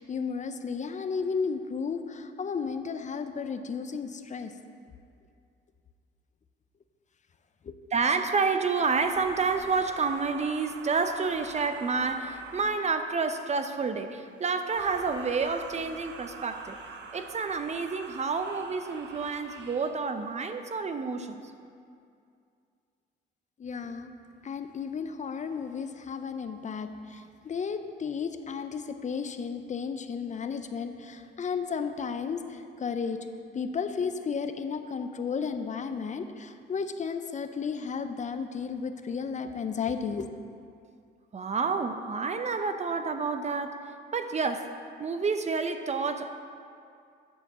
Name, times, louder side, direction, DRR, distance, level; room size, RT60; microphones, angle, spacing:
voice 1, 0.0-4.5 7.6-7.7 23.6-24.1 24.4-33.2 33.5-40.3, left 5 dB, 40° left, 8 dB, 0.5 m, -33 dB
voice 2, 7.9-16.8 17.1-21.4 41.3-43.8 44.1-46.3, right 4 dB, 35° right, 8 dB, 0.6 m, -29 dB
sound 1, 8.7-13.2 14.6-20.1, right 5 dB, 65° right, 0.8 m, -45 dB
9.9 x 4.4 x 6.9 m, 2.4 s
cardioid pair, 90°, 20 cm